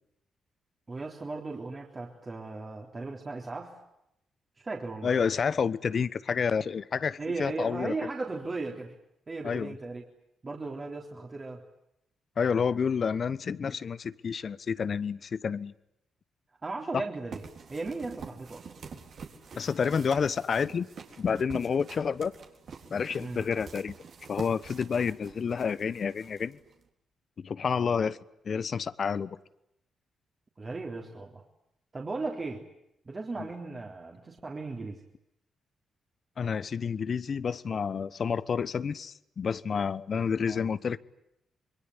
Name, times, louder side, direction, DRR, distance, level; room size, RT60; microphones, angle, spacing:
voice 1, 0.9-3.8 4.6-5.1 7.2-9.0 9.3-10.0 10.4-11.6 16.6-17.4 17.7-18.7 23.2-23.4 30.6-31.4 31.9-32.6 33.1-35.0 40.5-40.6, right 3 dB, 35° right, 3.6 m, -36 dB
voice 2, 5.0-7.9 9.4-9.8 12.4-15.7 16.9-17.0 19.6-20.9 21.2-22.3 22.9-23.9 24.3-26.6 27.4-28.2 28.4-29.4 33.4-33.5 36.4-41.0, left 6 dB, 55° left, 1.0 m, -29 dB
sound 1, 17.3-26.8, right 5 dB, 60° right, 3.7 m, -47 dB
26.5 x 23.0 x 9.7 m
hypercardioid pair, 45°, 0 cm